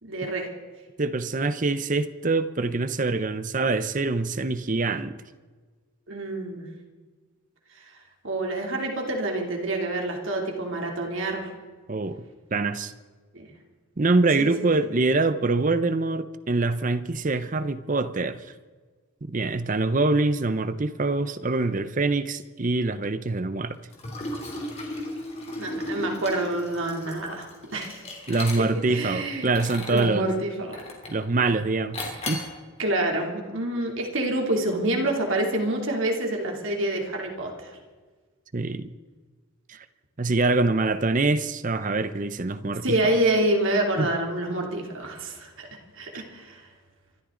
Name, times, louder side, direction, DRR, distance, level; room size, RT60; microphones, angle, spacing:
voice 1, 0.0-0.5 6.1-6.7 8.2-11.5 13.3-13.5 14.4-14.7 25.6-27.5 27.7-28.0 28.9-29.5 29.9-30.8 32.8-37.8 42.8-45.7 46.0-46.6, right 1 dB, 60° right, 2.9 m, -27 dB
voice 2, 1.0-5.2 11.9-12.2 12.5-12.9 14.0-18.4 19.2-23.8 28.3-30.3 31.1-32.5 38.5-38.9 39.7-39.8 40.2-43.1 44.0-44.1, right 3 dB, 35° right, 0.6 m, -25 dB
Liquid, 23.9-29.0 29.4-30.1 30.7-31.2 31.9-32.5, left 2 dB, 30° left, 3.1 m, -35 dB
25.0 x 13.5 x 3.9 m
head